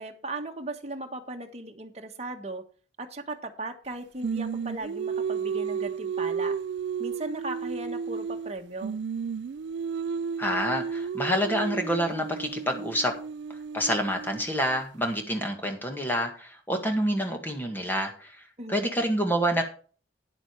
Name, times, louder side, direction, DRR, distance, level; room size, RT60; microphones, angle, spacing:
voice 1, 0.0-2.6 3.0-6.6 7.0-9.0 18.6-18.9, right 2 dB, 35° right, 4 dB, 1.4 m, -37 dB
Singing, 4.2-8.5 8.8-14.8, right 6 dB, 75° right, 0.4 m, -33 dB
voice 2, 10.4-13.1 13.7-18.3 18.7-19.6, equal, 10° left, 4 dB, 1.8 m, -27 dB
10.0 x 8.1 x 4.6 m, 0.39 s
head